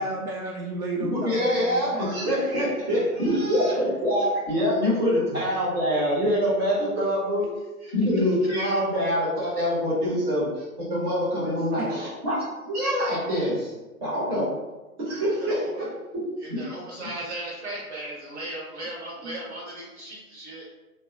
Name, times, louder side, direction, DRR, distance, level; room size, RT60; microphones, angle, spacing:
voice 1, 0.0-2.3 5.3-5.4 11.8-12.2 19.2-19.4, right 2 dB, 70° right, -2 dB, 0.5 m, -33 dB
voice 2, 1.0-7.5 7.9-13.7 14.0-14.5 15.0-16.2 16.5-16.6 17.0-17.1, equal, 20° right, -11 dB, 0.5 m, -25 dB
voice 3, 3.2-3.8 7.8-7.9 11.5-11.6 15.4-15.8 16.6-20.6, right 1 dB, 45° right, -5 dB, 1.2 m, -37 dB
2.7 x 2.0 x 2.3 m, 1.1 s
figure-of-eight pair, 130°, 45 cm